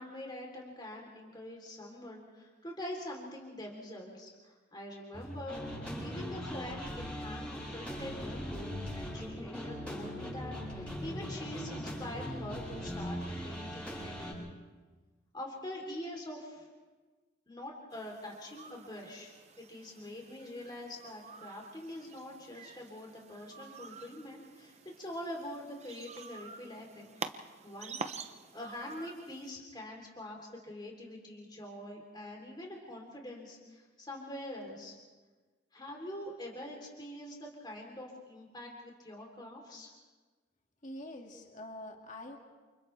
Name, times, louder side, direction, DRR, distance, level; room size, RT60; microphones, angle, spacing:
voice 1, 0.0-7.5 7.7-14.5 15.3-16.7 17.5-27.0 27.3-28.1 28.5-34.9 35.7-39.9, left 1 dB, 20° left, -1 dB, 3.5 m, -44 dB
sound 1, 5.1-14.3, equal, 5° left, 7.1 m, -40 dB
sound 2, 17.9-29.5, right 5 dB, 35° right, 0.9 m, -48 dB
voice 2, 40.8-42.4, left 1 dB, 40° left, 1 dB, 2.1 m, -45 dB
29.0 x 28.5 x 3.4 m, 1.3 s
head